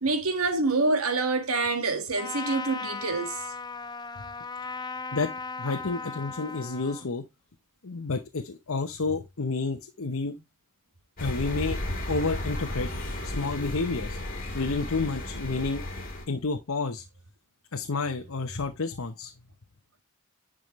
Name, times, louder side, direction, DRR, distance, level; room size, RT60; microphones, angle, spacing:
voice 1, 0.0-3.4, right 3 dB, 90° right, 1.8 m, -26 dB
Trumpet, 2.1-7.1, left 4 dB, 20° left, 0.5 m, -37 dB
voice 2, 5.6-7.2 7.8-10.3 11.2-11.8 12.1-12.9 13.2-14.2 14.5-15.8 16.3-17.0 17.7-19.3, left 3 dB, 70° left, 0.9 m, -30 dB
sound 1, 11.2-16.3, left 1 dB, 45° left, 2.9 m, -34 dB
10.5 x 5.0 x 3.1 m
head